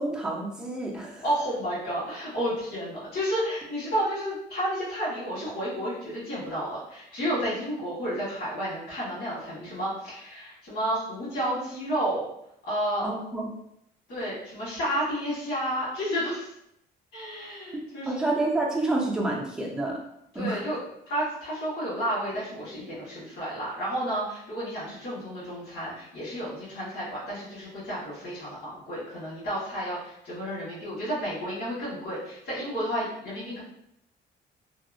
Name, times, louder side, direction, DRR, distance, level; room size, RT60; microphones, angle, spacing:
voice 1, 0.0-1.2 13.0-13.5 18.1-20.0 20.3-20.6, right 2 dB, 5° right, -3 dB, 0.4 m, -28 dB
voice 2, 1.2-12.2 12.6-13.1 14.1-16.5 17.1-18.2 20.3-20.8 21.1-33.6, equal, 65° left, -9 dB, 1.5 m, -31 dB
2.7 x 2.0 x 2.5 m, 0.77 s
cardioid pair, 165°, 18 cm